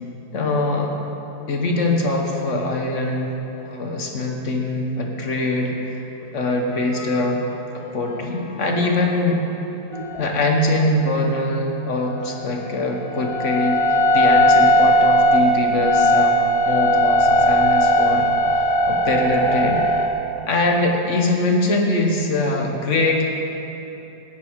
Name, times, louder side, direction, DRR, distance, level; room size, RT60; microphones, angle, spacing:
voice 1, 0.3-0.9 1.5-6.0 6.3-7.4 7.9-9.4 10.2-18.3 18.6-19.8 20.5-23.2, left 2 dB, 45° left, 1 dB, 1.4 m, -22 dB
sound 1, 7.0-7.2 8.1-8.4 8.7-9.3 9.9-10.4 12.3-20.1, equal, 20° left, 0.9 m, -18 dB
15.0 x 9.3 x 4.7 m, 3.0 s
omnidirectional pair, 1.9 m